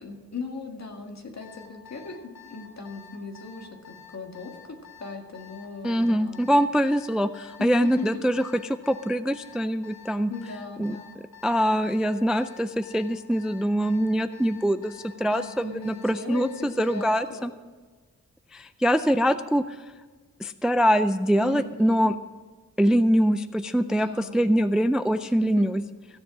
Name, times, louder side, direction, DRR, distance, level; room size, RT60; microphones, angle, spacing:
voice 1, 0.0-6.4 7.6-8.2 10.3-11.1 15.3-17.5 21.4-22.1 23.8-24.4 25.2-25.7, left 4 dB, 50° left, 3 dB, 1.8 m, -38 dB
Alarm, 1.4-17.2, left 8 dB, 90° left, 3.0 m, -49 dB
voice 2, 5.8-10.3 10.8-11.0 11.4-17.5 18.5-19.8 20.4-22.2 22.8-25.8, equal, ahead, 12 dB, 0.3 m, -24 dB
15.5 x 7.4 x 6.1 m, 1.4 s
wide cardioid pair, 110°, 34 cm